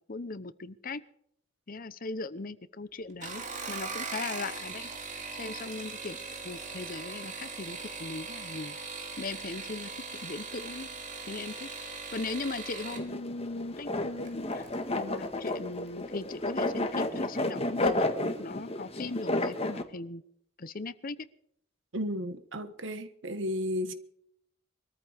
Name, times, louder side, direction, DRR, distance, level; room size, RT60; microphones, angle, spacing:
voice 1, 0.1-1.0 1.7-4.9 5.4-6.2 6.4-8.8 9.2-10.9 11.2-11.7 12.1-14.7 14.9-18.1 18.4-20.2 20.6-21.2, left 3 dB, 45° left, 0.9 m, -38 dB
sound 1, 3.1-13.0 14.2-14.7 15.2-15.6 15.9-16.0, right 4 dB, 40° right, 2.9 m, -40 dB
sound 2, 12.9-19.8, left 2 dB, 30° left, 1.5 m, -31 dB
voice 2, 21.9-23.9, equal, 75° right, 1.5 m, -33 dB
23.5 x 14.0 x 3.5 m
head